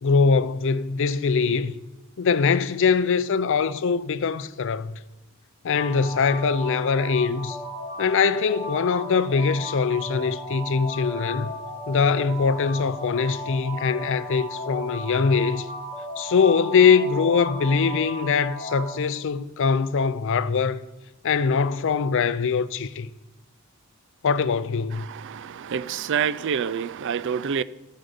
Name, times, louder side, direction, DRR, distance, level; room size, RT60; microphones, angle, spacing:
voice 1, 0.0-1.8 2.2-4.9 5.6-7.6 8.0-11.5 11.9-15.7 16.2-20.8 21.2-23.1 24.2-25.1, left 5 dB, 60° left, 0.5 m, -22 dB
sound 1, 5.7-18.9, equal, 30° right, 4.5 m, -35 dB
voice 2, 25.1-27.6, right 7 dB, 55° right, 0.4 m, -27 dB
14.0 x 5.1 x 6.7 m
head